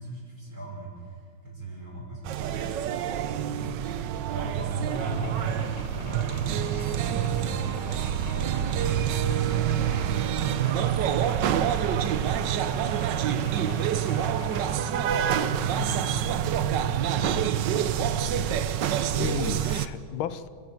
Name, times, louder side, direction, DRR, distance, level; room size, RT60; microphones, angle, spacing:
voice 1, 0.0-2.7 3.4-4.0 4.3-11.3 11.6-18.6, equal, 45° right, -2 dB, 6.4 m, -39 dB
sound 1, 2.2-19.9, right 9 dB, 65° right, 1.4 m, -27 dB
sound 2, 4.9-14.7, left 3 dB, 60° left, 3.6 m, -46 dB
voice 2, 13.3-13.9 19.1-20.5, left 10 dB, 85° left, 15 dB, 1.6 m, -34 dB
28.5 x 15.5 x 7.3 m, 2.3 s
omnidirectional pair, 2.2 m